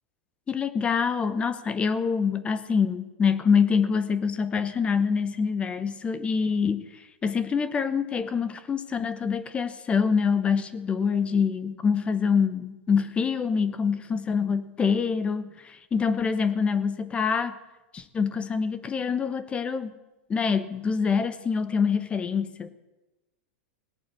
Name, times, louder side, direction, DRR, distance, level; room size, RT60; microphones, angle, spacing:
voice 1, 0.5-17.6 17.9-19.9 20.3-22.7, left 6 dB, 20° left, 14 dB, 0.8 m, -25 dB
17.5 x 8.9 x 7.7 m, 1.0 s
supercardioid pair, 135°, 6 cm